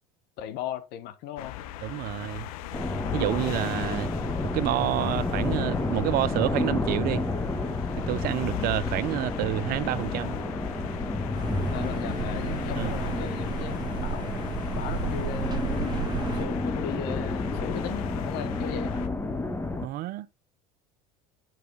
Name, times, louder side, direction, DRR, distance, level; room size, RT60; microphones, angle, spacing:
voice 1, 0.4-1.5 3.7-3.9 8.5-8.8 11.7-14.3 14.7-15.8 16.3-19.0 19.7-19.9, left 10 dB, 60° left, 1.3 m, -37 dB
sound 1, 1.4-19.1, left 12 dB, 75° left, 0.8 m, -38 dB
voice 2, 1.8-2.5 3.1-4.1 4.5-7.2 8.1-10.4 12.8-13.0 19.8-20.4, right 15 dB, 50° right, 0.6 m, -29 dB
sound 2, 2.7-19.9, left 2 dB, 10° left, 1.2 m, -31 dB
sound 3, 11.3-16.5, right 6 dB, 20° right, 1.7 m, -33 dB
9.1 x 4.8 x 3.5 m
hypercardioid pair, 80°, 19 cm